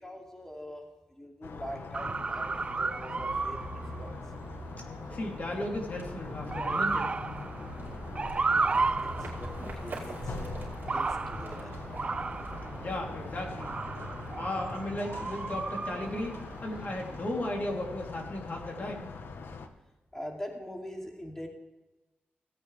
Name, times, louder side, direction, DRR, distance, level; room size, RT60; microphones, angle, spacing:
voice 1, 0.0-0.8 1.1-3.6 4.0-4.1 8.5-10.5 10.9-11.8 20.1-21.5, equal, 10° left, 0 dB, 2.5 m, -43 dB
sound 1, 1.4-19.7, left 4 dB, 70° left, 1.1 m, -42 dB
Motor vehicle (road) / Siren, 1.9-17.5, right 4 dB, 30° right, 0.3 m, -34 dB
sound 2, 4.6-15.3, right 3 dB, 60° right, 2.7 m, -47 dB
voice 2, 5.1-7.1 12.8-13.8 14.3-16.3 16.6-19.1, left 1 dB, 45° left, 0 dB, 2.9 m, -35 dB
16.5 x 8.8 x 3.3 m, 1.1 s
cardioid pair, 90°, 4 cm